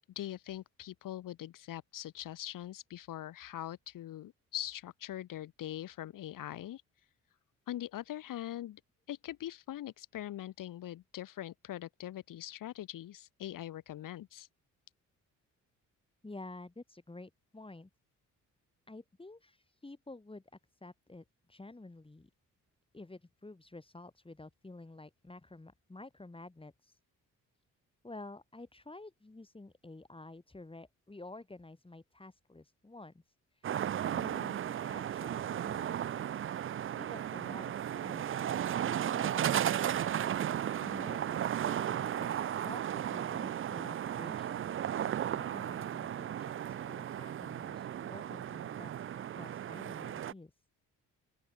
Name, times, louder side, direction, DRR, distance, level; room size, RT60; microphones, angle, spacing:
voice 1, 0.2-6.8 7.7-8.8 9.1-14.5, left 13 dB, 80° left, 4.3 m, -42 dB
voice 2, 16.2-17.9 18.9-22.3 22.9-27.0 28.0-33.2 33.5-33.7 34.1-36.1 36.8-39.6 40.5-48.9 49.3-50.5, left 2 dB, 15° left, 8.0 m, -51 dB
sound 1, 33.6-50.3, right 10 dB, 40° right, 0.5 m, -35 dB
open air
cardioid pair, 90°, 32 cm